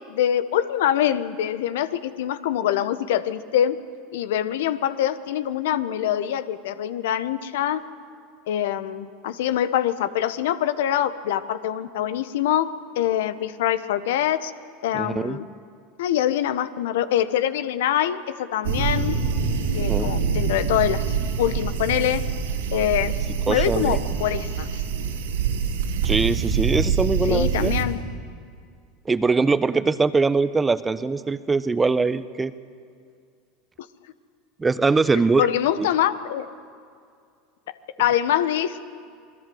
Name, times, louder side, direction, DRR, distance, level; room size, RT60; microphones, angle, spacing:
voice 1, 0.1-3.8 4.1-7.8 8.5-12.7 13.0-14.5 14.8-15.5 16.0-19.2 19.7-22.2 22.7-23.1 23.5-24.8 27.3-28.0 35.4-36.4 38.0-38.8, left 11 dB, 75° left, 12 dB, 1.2 m, -24 dB
voice 2, 14.9-15.4 19.8-20.1 23.5-24.0 26.0-27.7 29.0-32.5 34.6-35.5 35.8-35.9, right 4 dB, 20° right, 14 dB, 1.1 m, -22 dB
sound 1, 18.6-27.8, right 6 dB, 80° right, 4.0 m, -25 dB
27.0 x 21.0 x 7.9 m, 2.2 s
hypercardioid pair, 85°, 0 cm